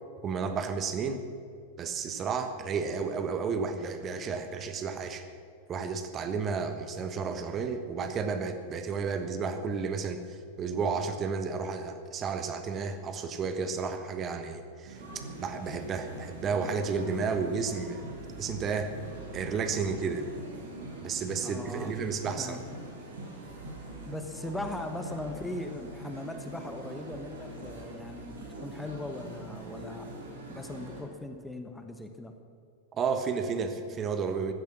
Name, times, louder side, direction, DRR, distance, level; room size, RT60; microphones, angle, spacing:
voice 1, 0.2-1.2 1.8-5.2 5.7-15.0 15.4-18.1 18.4-18.9 19.3-20.2 21.0-22.6 32.9-34.5, right 5 dB, 30° right, 8 dB, 1.3 m, -32 dB
sound 1, 14.8-31.0, right 1 dB, 70° right, 3.8 m, -43 dB
voice 2, 21.4-21.9 22.4-22.6 24.0-30.1 30.5-32.3, left 2 dB, 5° left, 6 dB, 1.2 m, -39 dB
15.5 x 12.5 x 6.1 m, 2.2 s
figure-of-eight pair, 90°, 0 cm